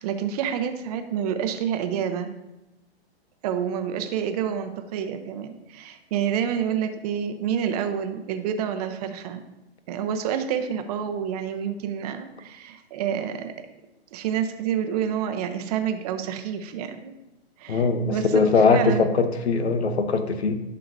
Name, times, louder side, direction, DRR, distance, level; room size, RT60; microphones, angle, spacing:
voice 1, 0.0-2.3 3.4-9.4 9.9-13.7 14.1-17.1 17.6-19.2, right 8 dB, 40° right, 7 dB, 0.8 m, -28 dB
voice 2, 17.7-20.6, left 4 dB, 90° left, 9 dB, 1.0 m, -21 dB
11.5 x 5.7 x 2.7 m, 0.97 s
hypercardioid pair, 135°, 32 cm